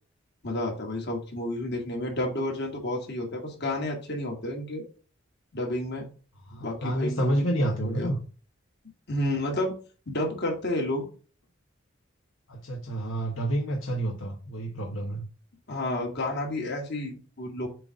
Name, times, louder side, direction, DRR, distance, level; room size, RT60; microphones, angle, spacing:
voice 1, 0.4-4.8 5.5-6.1 6.6-7.4 8.0-8.1 9.1-9.7 10.1-11.1 15.7-17.7, left 1 dB, 55° left, 2.1 m, -30 dB
voice 2, 6.4-8.2 12.5-15.2, right 1 dB, 75° left, 1.0 m, -29 dB
7.5 x 2.5 x 5.2 m
head